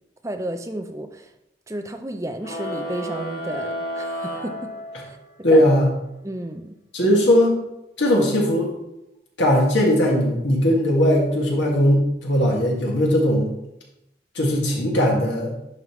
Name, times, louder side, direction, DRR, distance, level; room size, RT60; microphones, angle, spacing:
voice 1, 0.2-1.3 1.7-4.7 5.0-5.2 5.5-5.7 6.2-6.8 7.0-7.2, right 1 dB, 15° right, 6 dB, 0.5 m, -32 dB
sound 1, 2.4-5.4, equal, 60° left, 2.2 m, -31 dB
voice 2, 5.4-5.9 6.9-7.6 8.0-8.7 9.4-13.5 14.4-15.5, equal, 85° left, -2 dB, 2.0 m, -19 dB
11.0 x 5.3 x 3.2 m, 0.89 s
head